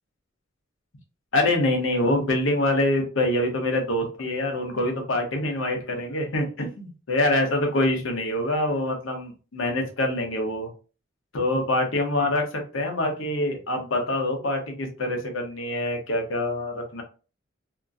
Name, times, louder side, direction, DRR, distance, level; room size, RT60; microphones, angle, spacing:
voice 1, 1.3-10.7 11.3-17.0, left 1 dB, 75° left, 2 dB, 0.8 m, -25 dB
2.8 x 2.5 x 2.4 m, 0.35 s
head